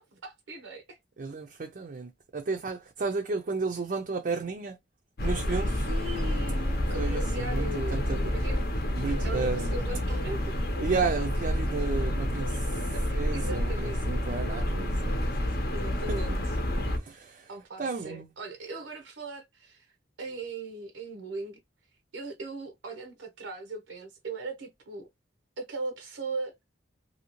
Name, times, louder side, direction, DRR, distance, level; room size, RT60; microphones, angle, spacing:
voice 1, 0.0-1.0 5.4-8.6 9.2-10.5 12.9-14.0 15.7-16.4 17.5-19.9 20.2-21.6 22.1-25.1 25.6-26.6, right 2 dB, 85° right, 0.6 m, -39 dB
voice 2, 1.2-4.8 5.2-5.9 6.9-8.4 8.9-9.8 10.8-15.1 15.4-15.5 16.1-16.2 16.9-17.5 17.8-18.3, right 4 dB, 45° right, 0.4 m, -33 dB
sound 1, 5.2-17.0, left 1 dB, 55° left, 0.7 m, -29 dB
2.7 x 2.7 x 2.9 m
head